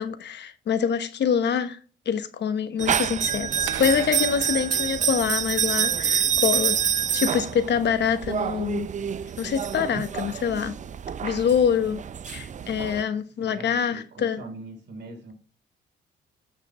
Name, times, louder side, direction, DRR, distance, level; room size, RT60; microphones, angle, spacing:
voice 1, 0.0-1.8 2.1-6.7 7.1-8.9 9.4-10.8 11.2-14.4, left 7 dB, 60° left, 1.1 m, -25 dB
sound 1, 2.8-13.0, right 8 dB, 40° right, 0.5 m, -27 dB
sound 2, 3.7-5.8, right 11 dB, 90° right, 0.9 m, -38 dB
voice 2, 6.5-7.1 13.1-15.3, right 2 dB, 60° right, 3.5 m, -43 dB
8.5 x 6.6 x 3.1 m
cardioid pair, 90°, 20 cm